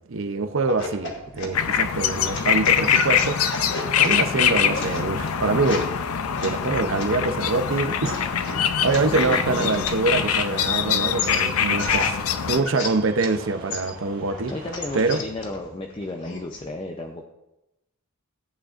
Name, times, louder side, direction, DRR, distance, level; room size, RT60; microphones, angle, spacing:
voice 1, 0.1-3.5 4.0-5.9 6.4-12.2 12.5-14.5 14.9-15.2, right 3 dB, 60° right, 0.6 m, -25 dB
sound 1, 0.6-10.8 11.2-13.4 13.7-16.7, left 2 dB, 55° left, 1.3 m, -35 dB
sound 2, 1.5-12.6, left 8 dB, 85° left, 0.5 m, -23 dB
sound 3, 5.4-15.0, right 1 dB, 40° right, 1.9 m, -45 dB
voice 2, 9.0-9.8 14.5-17.3, left 2 dB, 25° left, 0.5 m, -33 dB
14.0 x 8.7 x 2.5 m
head